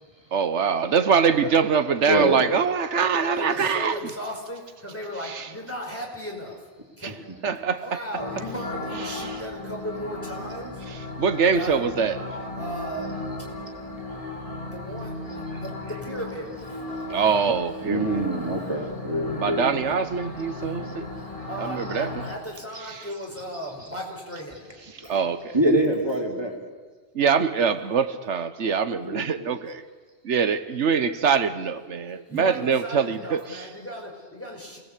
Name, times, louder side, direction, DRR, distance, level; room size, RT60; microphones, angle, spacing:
voice 1, 0.3-4.1 5.2-5.5 7.0-7.1 7.4-8.0 8.9-9.4 10.9-12.4 17.1-18.2 19.4-21.1 21.6-22.1 22.9-23.1 24.9-25.5 27.1-29.8 30.2-33.7, right 6 dB, 85° right, 11 dB, 1.4 m, -24 dB
voice 2, 2.1-2.5 7.1-7.4 17.8-20.0 23.5-23.7 24.3-24.4 25.0-25.2 25.5-26.6 29.0-29.5, right 1 dB, 20° right, 0 dB, 3.6 m, -26 dB
voice 3, 3.1-6.7 7.0-7.2 7.4-7.5 7.8-10.8 11.3-11.8 12.6-13.1 14.7-16.8 21.5-24.7 32.3-34.8, equal, 10° left, -1 dB, 5.3 m, -36 dB
sound 1, 8.2-22.4, left 2 dB, 30° left, 3.3 m, -36 dB
27.5 x 19.0 x 8.3 m, 1.4 s
omnidirectional pair, 1.2 m